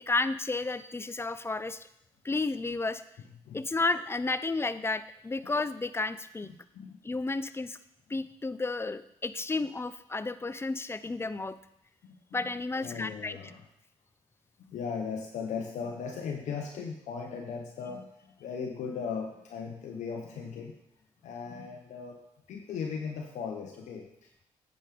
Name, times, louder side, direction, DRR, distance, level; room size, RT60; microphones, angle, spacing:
voice 1, 0.0-1.9 2.2-3.0 3.5-6.5 7.0-7.8 8.1-11.6 12.3-13.4, left 3 dB, 20° left, 14 dB, 0.6 m, -32 dB
voice 2, 6.4-7.0 12.0-13.6 14.7-20.7 21.2-22.2 22.5-24.4, left 6 dB, 75° left, 1 dB, 1.1 m, -38 dB
9.0 x 5.3 x 5.2 m, 0.77 s
supercardioid pair, 55°, 13 cm